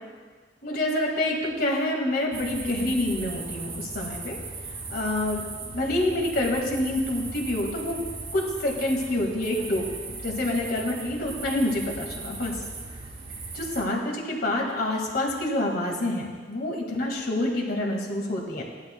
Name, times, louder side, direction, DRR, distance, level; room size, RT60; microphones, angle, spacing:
voice 1, 0.6-4.4 4.9-8.0 8.3-12.6 13.5-18.6, left 1 dB, 60° left, 0 dB, 1.9 m, -27 dB
sound 1, 2.3-13.8, right 3 dB, 35° right, 1.6 m, -38 dB
16.5 x 11.0 x 2.3 m, 1.5 s
head